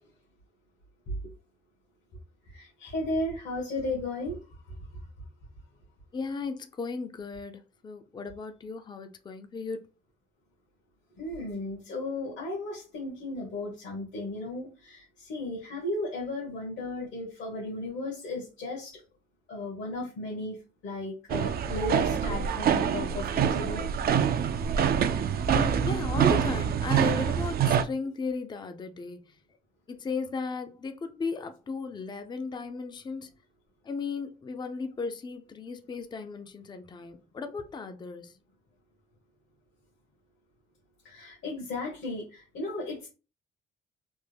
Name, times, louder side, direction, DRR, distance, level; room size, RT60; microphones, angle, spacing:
voice 1, 2.5-4.4 11.2-19.0 19.5-20.6 20.8-23.9 41.0-43.1, left 2 dB, 70° left, 1.3 m, -35 dB
voice 2, 6.1-9.8 25.5-29.4 29.9-33.3 33.8-38.3, left 4 dB, 20° left, 0.4 m, -36 dB
sound 1, 21.3-27.8, right 8 dB, 50° right, 0.4 m, -25 dB
3.4 x 2.1 x 3.3 m
cardioid pair, 90°, 20 cm